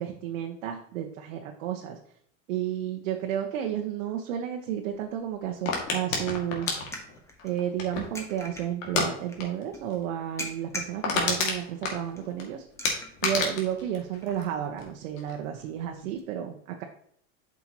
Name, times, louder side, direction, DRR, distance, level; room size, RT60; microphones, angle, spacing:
voice 1, 0.0-2.0 2.5-6.8 7.4-12.6 13.2-16.8, right 10 dB, 75° right, 2 dB, 1.0 m, -32 dB
sound 1, 4.9-16.2, left 1 dB, 5° left, 1.4 m, -46 dB
sound 2, 5.7-8.2 8.8-9.1 9.4-9.6 9.9-10.0 10.4-10.5 10.8-12.4 12.8-14.9 15.2-15.6, left 4 dB, 80° left, 2.2 m, -29 dB
8.0 x 6.1 x 3.0 m, 0.65 s
supercardioid pair, 115°, 39 cm